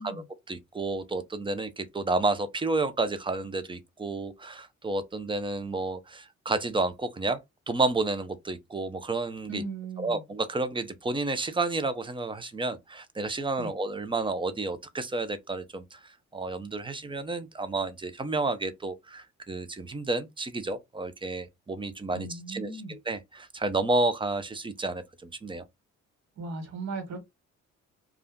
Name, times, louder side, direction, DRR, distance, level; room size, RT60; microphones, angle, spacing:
voice 1, 0.0-7.4 7.7-9.6 10.0-25.6, right 3 dB, 15° right, 0.5 m, -31 dB
voice 2, 9.5-10.2 13.6-13.7 22.1-22.9 26.4-27.2, right 3 dB, 65° right, 1.5 m, -37 dB
2.4 x 2.2 x 3.5 m
cardioid pair, 90°, 30 cm